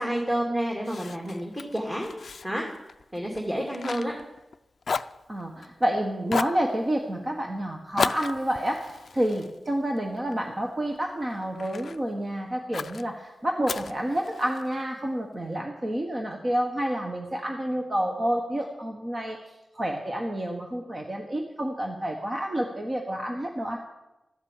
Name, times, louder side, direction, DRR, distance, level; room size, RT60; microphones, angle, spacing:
voice 1, 0.0-2.1 2.4-2.6 3.1-4.1, equal, 15° right, -1 dB, 2.4 m, -29 dB
Fire, 0.8-4.6 4.8-5.9 6.3-6.6 8.0-10.4 10.9-12.0 12.7-13.0 13.6-14.7, left 5 dB, 65° left, 0.4 m, -34 dB
voice 2, 5.3-19.4 19.7-23.8, right 1 dB, 30° right, 2 dB, 1.4 m, -29 dB
14.0 x 7.9 x 9.1 m, 0.97 s
wide cardioid pair, 110°, 0 cm